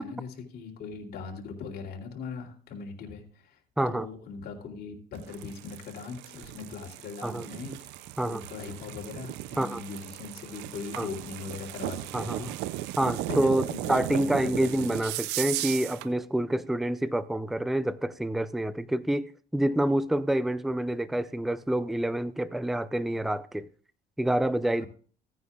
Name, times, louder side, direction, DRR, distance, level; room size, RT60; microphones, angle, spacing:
voice 1, 0.0-3.6 3.9-7.9 8.2-13.0 13.3-14.8 24.8-24.9, left 5 dB, 65° left, 2.8 m, -40 dB
voice 2, 3.8-4.1 7.2-7.5 8.2-8.4 9.6-9.8 11.0-11.1 12.1-12.5 13.0-23.7 24.2-24.8, right 1 dB, ahead, 0.4 m, -27 dB
sound 1, 5.1-16.1, right 16 dB, 90° right, 0.5 m, -37 dB
16.0 x 9.4 x 2.4 m
cardioid pair, 110°, 17 cm